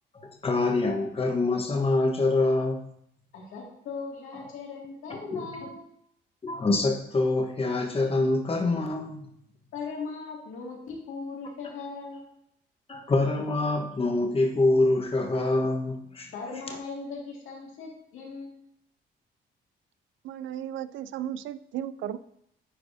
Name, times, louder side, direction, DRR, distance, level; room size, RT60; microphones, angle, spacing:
voice 1, 0.1-2.8 4.3-4.4 5.1-5.5 6.4-9.3 12.9-16.3, left 2 dB, 30° left, 2 dB, 1.1 m, -25 dB
voice 2, 3.3-5.8 9.7-12.2 16.3-18.5, left 4 dB, 85° left, -3 dB, 2.1 m, -38 dB
voice 3, 20.2-22.2, right 10 dB, 75° right, 15 dB, 0.4 m, -35 dB
10.0 x 4.6 x 2.7 m, 0.73 s
cardioid pair, 90°, 20 cm